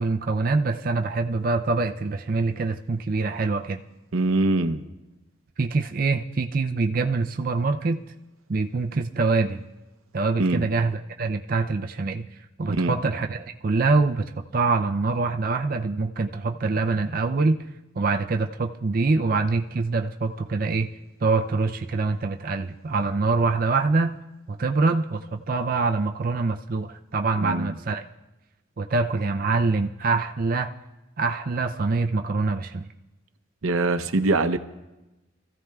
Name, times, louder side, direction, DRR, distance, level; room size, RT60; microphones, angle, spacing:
voice 1, 0.0-3.8 5.6-8.0 8.5-9.7 10.1-12.3 12.6-17.6 18.0-20.9 21.2-24.1 24.5-28.0 28.8-30.7 31.2-32.9, right 3 dB, 45° right, 0.4 m, -24 dB
voice 2, 4.1-4.8 10.4-10.7 12.7-12.9 27.4-27.7 33.6-34.6, right 2 dB, 85° right, 0.7 m, -23 dB
26.0 x 14.5 x 2.3 m
head